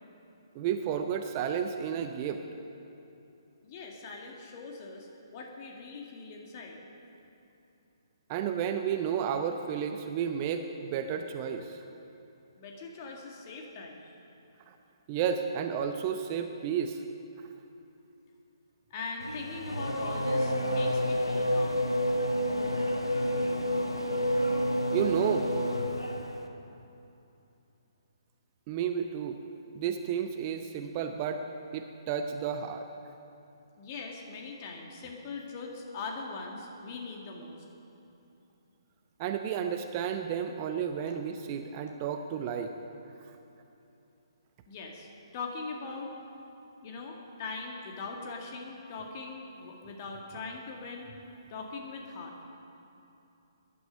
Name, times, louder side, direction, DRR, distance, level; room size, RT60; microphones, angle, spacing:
voice 1, 0.5-2.4 8.3-11.8 15.1-17.0 24.9-25.5 28.7-29.4 29.7-31.4 31.7-32.9 39.2-42.7, right 8 dB, 30° right, 6 dB, 0.7 m, -32 dB
voice 2, 3.6-6.8 12.6-14.1 18.9-21.9 33.8-37.6 41.1-41.2 44.7-45.1 45.3-46.1 46.8-51.1 51.5-52.3, left 4 dB, 35° left, 1 dB, 2.1 m, -41 dB
Race car auto racing / Accelerating revving vroom, 19.2-26.5, equal, 90° left, 1.3 m, -29 dB
19.5 x 11.0 x 5.3 m, 2.8 s
figure-of-eight pair, 130°, 2 cm